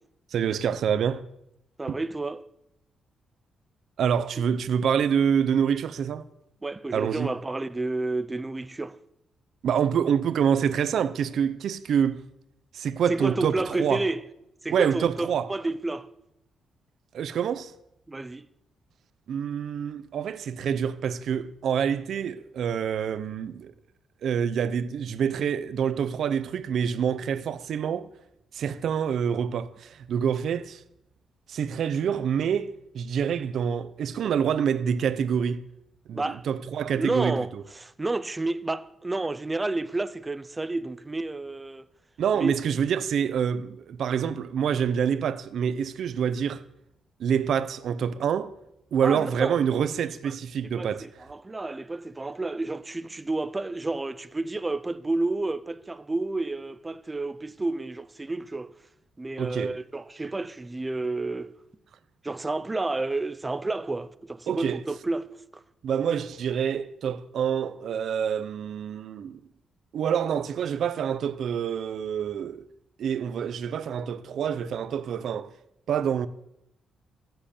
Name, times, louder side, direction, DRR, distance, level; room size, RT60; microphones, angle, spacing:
voice 1, 0.3-1.2 4.0-6.3 6.9-7.3 9.6-12.2 12.7-14.0 14.7-15.5 17.1-17.7 19.3-23.7 24.2-28.1 28.5-30.8 31.5-35.6 36.1-37.6 42.2-46.6 47.2-48.5 48.9-51.0 59.4-59.8 64.5-64.8 65.8-69.4 69.9-72.7 73.0-75.5 75.9-76.3, right 8 dB, 55° right, 0.8 m, -26 dB
voice 2, 1.8-2.4 6.6-9.0 13.1-14.2 14.6-16.1 18.1-18.5 36.1-36.4 37.0-41.9 42.3-42.5 49.0-49.6 50.7-58.7 59.2-61.5 62.2-65.6, right 2 dB, 15° right, 0.6 m, -30 dB
15.5 x 7.9 x 8.5 m
wide cardioid pair, 180°, 0 cm